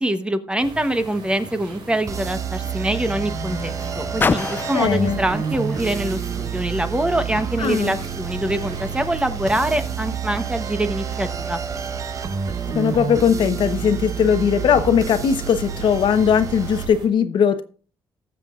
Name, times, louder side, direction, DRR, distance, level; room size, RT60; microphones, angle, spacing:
voice 1, 0.0-11.6, right 1 dB, 10° right, 9 dB, 0.9 m, -24 dB
Car, 0.6-7.2 8.0-8.1, left 4 dB, 20° left, 0.3 m, -31 dB
sound 1, 0.6-17.1, right 4 dB, 55° right, 3.8 m, -39 dB
sound 2, 2.1-16.9, right 7 dB, 35° right, 0.8 m, -29 dB
voice 2, 4.7-5.2 7.6-8.0 12.7-17.6, left 7 dB, 60° left, 10 dB, 1.0 m, -19 dB
19.0 x 7.4 x 2.5 m, 0.39 s
cardioid pair, 135°, 9 cm